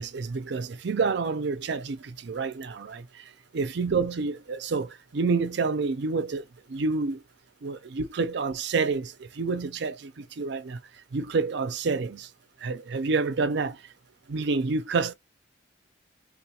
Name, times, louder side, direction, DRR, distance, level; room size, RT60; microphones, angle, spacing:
voice 1, 0.0-3.0 3.5-6.4 6.7-7.2 7.6-10.8 11.1-12.3 12.6-13.8 14.3-15.1, right 4 dB, 65° right, 0.5 m, -28 dB
3.7 x 2.4 x 2.8 m
head